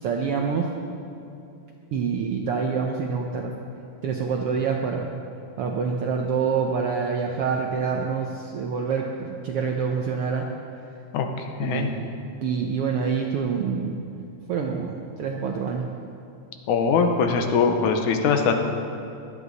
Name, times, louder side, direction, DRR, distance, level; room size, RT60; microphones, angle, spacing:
voice 1, 0.0-0.7 1.9-3.6 4.0-5.1 5.6-10.5 11.6-12.1 12.4-14.0 14.5-15.9, right 5 dB, 75° right, 1 dB, 1.3 m, -26 dB
voice 2, 11.6-11.9 16.7-18.6, left 5 dB, 85° left, 5 dB, 2.4 m, -21 dB
16.5 x 12.0 x 4.1 m, 2.6 s
omnidirectional pair, 3.4 m